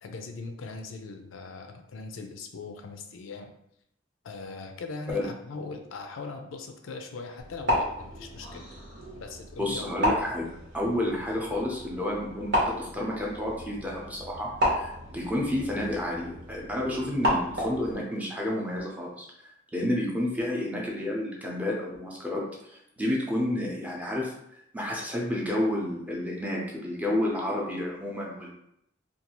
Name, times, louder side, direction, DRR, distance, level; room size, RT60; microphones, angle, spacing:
voice 1, 0.0-3.6 4.2-8.6 9.1-9.8, left 4 dB, 85° left, 5 dB, 0.4 m, -40 dB
sound 1, 7.4-17.9, equal, 65° right, 0.9 m, -32 dB
voice 2, 9.6-10.5 10.7-19.3 19.7-24.3 24.7-28.5, left 1 dB, 10° right, -3 dB, 0.6 m, -30 dB
2.6 x 2.3 x 2.9 m, 0.77 s
head